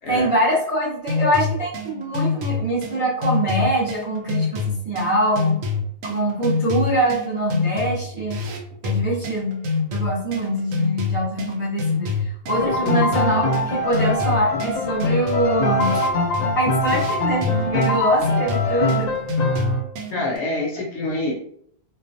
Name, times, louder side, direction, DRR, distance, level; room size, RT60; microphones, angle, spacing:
voice 1, 0.1-5.6 6.0-8.4 8.8-9.6 9.9-16.0 16.5-19.1, right 1 dB, 35° right, -8 dB, 0.5 m, -23 dB
sound 1, 1.1-20.4, left 5 dB, 80° right, 1.0 m, -26 dB
Piano, 12.5-19.8, left 1 dB, 90° left, 1.0 m, -23 dB
voice 2, 12.6-13.1 20.1-21.4, left 2 dB, 65° left, -1 dB, 0.8 m, -26 dB
2.4 x 2.2 x 2.5 m, 0.65 s
omnidirectional pair, 1.4 m